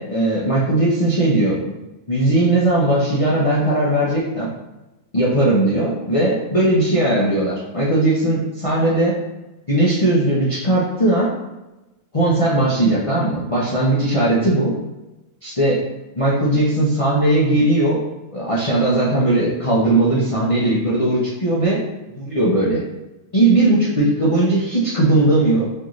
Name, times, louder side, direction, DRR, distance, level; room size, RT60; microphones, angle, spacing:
voice 1, 0.0-1.6 2.1-4.5 5.1-9.2 9.7-11.3 12.1-14.7 15.4-15.8 16.2-18.0 18.3-21.8 22.1-22.8 23.3-25.7, right 1 dB, 45° left, -7 dB, 0.4 m, -18 dB
4.4 x 2.5 x 3.0 m, 1.0 s
omnidirectional pair, 1.6 m